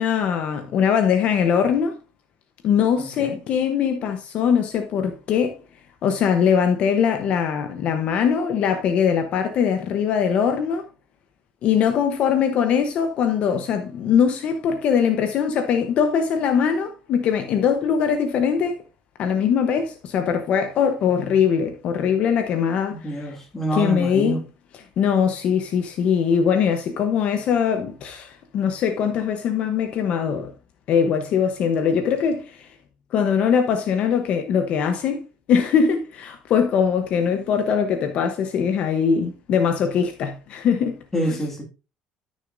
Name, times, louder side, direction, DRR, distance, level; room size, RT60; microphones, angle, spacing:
voice 1, 0.0-2.0 2.6-5.6 6.0-10.8 11.6-18.8 19.2-23.3 23.7-24.4 25.0-30.5 30.9-32.7 33.1-41.0, left 7 dB, 50° left, 0.8 m, -21 dB
voice 2, 3.0-3.4 23.0-24.4 41.1-41.6, right 1 dB, 10° left, 2.0 m, -27 dB
13.0 x 6.3 x 2.6 m
cardioid pair, 165°, 3 cm